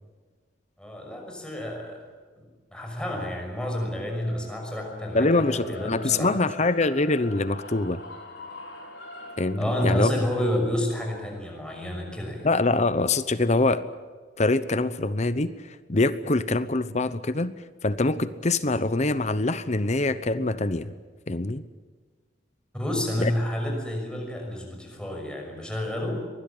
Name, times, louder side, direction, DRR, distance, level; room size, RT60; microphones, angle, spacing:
voice 1, 0.8-2.0 2.4-6.4 9.6-12.5 22.7-26.3, left 1 dB, 5° left, 1 dB, 6.1 m, -29 dB
sound 1, 4.0-14.2, left 2 dB, 80° left, 4.9 m, -44 dB
voice 2, 5.1-8.0 9.4-10.3 12.4-13.8 14.4-15.5 15.9-17.5 17.8-20.9 21.3-21.6 23.2-23.3, left 2 dB, 40° left, 14 dB, 0.9 m, -24 dB
24.0 x 20.5 x 8.9 m, 1.4 s
head